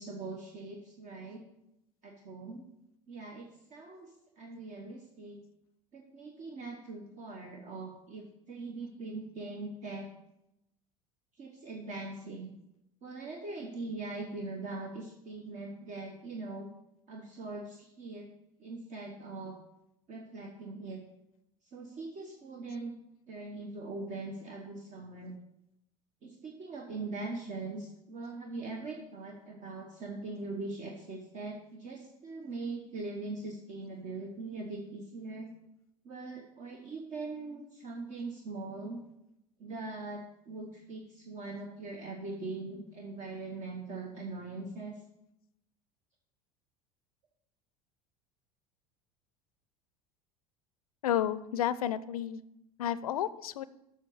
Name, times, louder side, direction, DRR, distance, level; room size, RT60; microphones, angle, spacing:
voice 1, 0.0-1.4 2.0-2.6 3.1-5.4 5.9-10.1 11.4-12.5 13.0-16.7 17.1-18.3 18.6-19.6 20.1-21.0 21.6-22.9 23.3-25.3 26.2-35.5 36.0-39.0 39.6-45.0, right 3 dB, 40° right, 1 dB, 1.2 m, -41 dB
voice 2, 51.0-52.4 52.8-53.6, left 10 dB, 80° left, 17 dB, 0.5 m, -31 dB
7.8 x 5.9 x 6.4 m, 0.85 s
hypercardioid pair, 75°, 18 cm